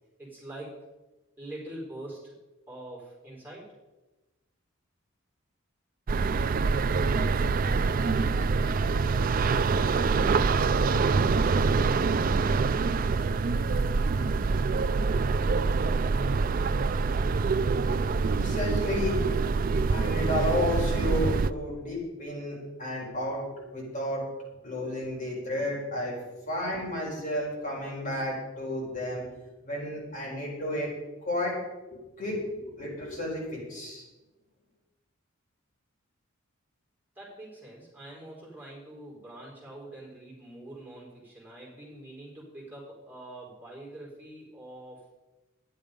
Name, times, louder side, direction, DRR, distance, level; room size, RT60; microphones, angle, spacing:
voice 1, 0.2-0.8 1.4-2.3 2.7-3.7 37.1-45.0, right 1 dB, 10° right, -5 dB, 4.5 m, -44 dB
sound 1, 6.1-21.5, right 4 dB, 40° right, 0.4 m, -25 dB
voice 2, 18.4-19.2 19.9-24.2 24.6-29.2 29.6-30.9 31.2-31.5 31.9-34.0, left 1 dB, 40° left, -4 dB, 4.4 m, -32 dB
12.5 x 10.5 x 5.2 m, 1.1 s
head